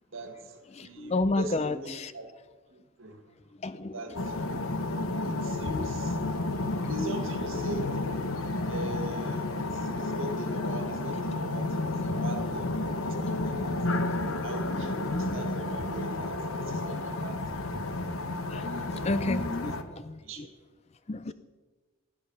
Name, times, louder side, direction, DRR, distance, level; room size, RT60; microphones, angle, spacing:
voice 1, 0.1-2.3 2.7-3.2 3.9-4.9 5.2-6.2 6.9-8.0 8.7-13.7 14.4-17.6 18.7-19.1 19.4-19.8 20.2-20.5, right 1 dB, 65° right, 6 dB, 1.9 m, -41 dB
voice 2, 0.7-2.1 3.6-3.9 14.8-15.3 18.5-20.5 21.1-21.3, left 2 dB, 30° left, 14 dB, 0.4 m, -31 dB
sound 1, 4.1-19.8, left 2 dB, 75° left, 1.0 m, -31 dB
16.0 x 10.0 x 5.6 m, 1.3 s
head